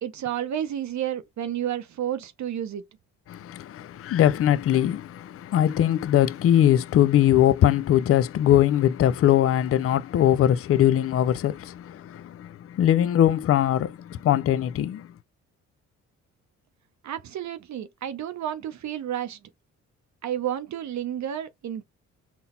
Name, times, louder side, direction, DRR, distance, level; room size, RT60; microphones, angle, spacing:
voice 1, 0.0-2.8 17.0-19.4 20.2-21.8, right 10 dB, 55° right, 0.6 m, -31 dB
voice 2, 3.3-15.1, left 11 dB, 40° left, 0.4 m, -21 dB
3.9 x 2.1 x 4.1 m
supercardioid pair, 55°, 34 cm